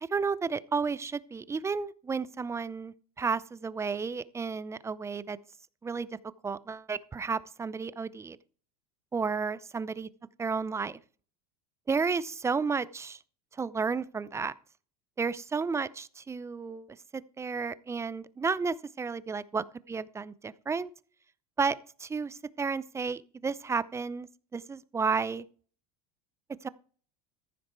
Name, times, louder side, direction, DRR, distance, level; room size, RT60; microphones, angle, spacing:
voice 1, 0.1-5.4 5.8-6.1 6.4-8.4 9.1-10.1 10.4-11.0 11.9-13.2 13.6-14.5 15.2-20.9 21.6-25.4 26.6-26.7, right 5 dB, 15° right, 0.6 m, -32 dB
14.5 x 6.4 x 4.6 m
supercardioid pair, 110°, 19 cm